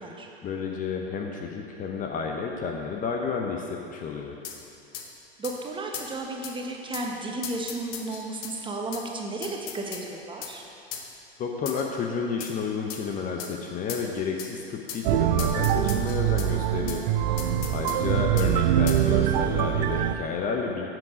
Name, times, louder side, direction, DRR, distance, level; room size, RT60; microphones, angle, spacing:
voice 1, 0.4-4.3 11.4-17.0 17.7-20.9, left 5 dB, 25° left, 2 dB, 0.9 m, -31 dB
sound 1, 4.4-4.6 4.9-5.1 5.4-5.6 5.9-6.1 6.4-6.6 6.9-7.1 7.4-8.6 8.9-9.1 9.4-10.1 10.4-10.6 10.9-11.1 11.7-11.9 12.4-12.6 12.9-13.0 13.4-13.5 13.9-14.1 14.4-14.5 14.9-15.0 15.4-16.5 16.9-17.0 17.4-18.0 18.4-18.5 18.9-19.0, left 8 dB, 45° left, 1.2 m, -37 dB
voice 2, 5.4-10.6 17.3-17.9, right 2 dB, 15° right, 1 dB, 1.2 m, -34 dB
sound 2, 15.0-20.1, right 11 dB, 45° right, 0.6 m, -24 dB
11.0 x 7.7 x 5.1 m, 2.8 s
figure-of-eight pair, 90°, 32 cm